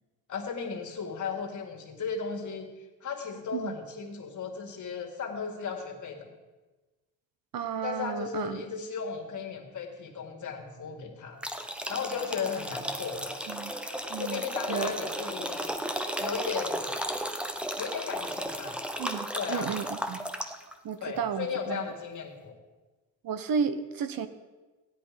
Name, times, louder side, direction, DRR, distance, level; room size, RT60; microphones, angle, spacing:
voice 1, 0.3-2.7 3.0-6.3 7.8-11.4 11.9-13.4 14.2-15.8 16.2-17.0 17.8-18.8 19.3-19.8 21.0-22.6, left 6 dB, 55° left, 2 dB, 2.0 m, -35 dB
voice 2, 7.5-8.6 13.5-13.7 14.1-14.4 14.7-14.9 19.0-20.2 20.8-21.9 23.2-24.3, right 7 dB, 75° right, 11 dB, 0.9 m, -33 dB
sound 1, 11.4-20.7, equal, 5° right, 0.6 m, -34 dB
15.5 x 10.0 x 5.1 m, 1.2 s
wide cardioid pair, 175°, 35 cm